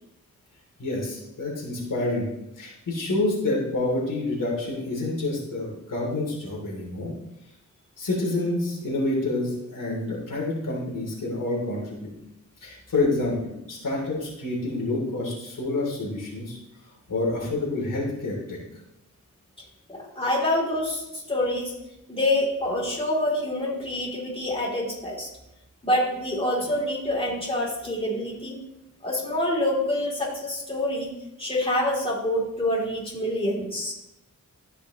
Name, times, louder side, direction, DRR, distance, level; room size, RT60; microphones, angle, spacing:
voice 1, 0.8-7.1 8.0-12.1 12.6-16.6 17.1-18.6, left 2 dB, 80° left, -4 dB, 3.1 m, -28 dB
voice 2, 19.9-21.7 22.1-25.3 25.8-28.6 29.0-31.1 31.4-33.9, left 1 dB, 15° left, -4 dB, 3.2 m, -26 dB
14.0 x 5.7 x 3.1 m, 0.87 s
wide cardioid pair, 80°, 32 cm